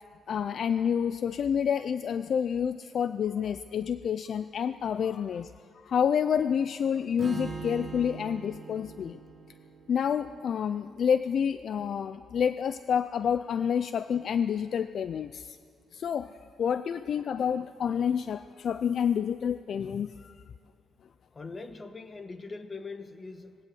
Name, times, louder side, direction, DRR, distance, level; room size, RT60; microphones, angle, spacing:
voice 1, 0.3-5.5 5.8-9.2 9.9-15.6 15.9-16.3 16.6-20.3, left 7 dB, 50° left, 13 dB, 0.4 m, -28 dB
Strum, 7.2-11.3, right 5 dB, 25° right, 2.8 m, -42 dB
voice 2, 21.3-23.6, left 3 dB, 25° left, 9 dB, 1.3 m, -41 dB
20.0 x 17.5 x 7.8 m, 2.2 s
cardioid pair, 130°, 0 cm